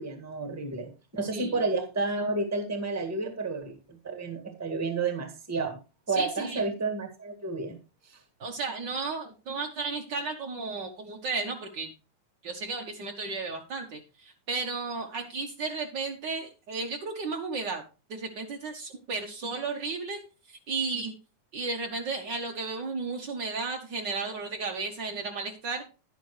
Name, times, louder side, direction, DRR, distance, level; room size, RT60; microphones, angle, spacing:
voice 1, 0.0-3.8 4.0-5.8 6.1-7.8 8.1-8.2, right 3 dB, 10° right, 4 dB, 0.8 m, -31 dB
voice 2, 1.3-1.6 6.1-6.6 8.4-11.9 12.4-17.8 18.1-20.2 20.5-21.1 21.5-25.8, right 4 dB, 80° right, 2 dB, 0.9 m, -34 dB
11.0 x 9.9 x 3.2 m, 0.31 s
omnidirectional pair, 3.7 m